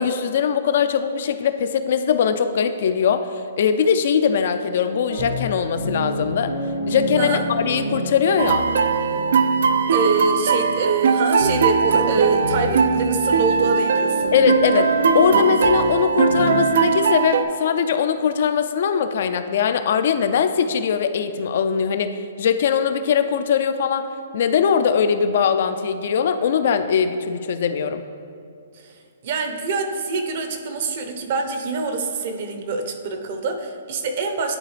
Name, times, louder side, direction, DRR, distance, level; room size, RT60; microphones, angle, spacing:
voice 1, 0.0-3.3 3.6-6.5 6.9-8.7 14.3-24.0 24.3-28.0, left 7 dB, 60° left, 10 dB, 0.4 m, -21 dB
sound 1, 5.1-16.6, right 1 dB, 90° right, 1.3 m, -29 dB
sound 2, 8.4-17.4, right 6 dB, 70° right, 0.4 m, -20 dB
voice 2, 9.9-14.3 28.8-28.9 29.2-34.6, right 4 dB, 50° right, 5 dB, 0.8 m, -25 dB
11.0 x 4.0 x 3.3 m, 2.4 s
hypercardioid pair, 150°, 0 cm